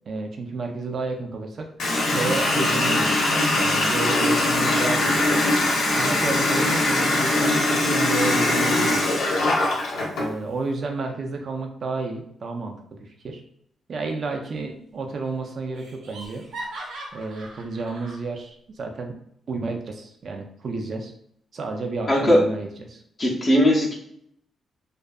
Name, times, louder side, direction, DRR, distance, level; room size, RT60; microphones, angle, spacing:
voice 1, 0.1-3.3 3.6-5.4 5.9-9.2 10.1-13.4 13.9-16.5 17.1-19.2 19.5-21.1 21.5-23.0, right 3 dB, 45° right, 3 dB, 0.4 m, -31 dB
Water tap faucet, 1.8-10.3, left 2 dB, 85° left, 0.7 m, -21 dB
Laughter, 14.4-15.0 15.3-15.4 15.8-18.2, right 1 dB, 85° right, 0.7 m, -39 dB
voice 2, 22.1-22.4 23.2-23.9, equal, 30° left, -4 dB, 0.6 m, -18 dB
2.5 x 2.3 x 2.2 m, 0.70 s
cardioid pair, 135°, 0 cm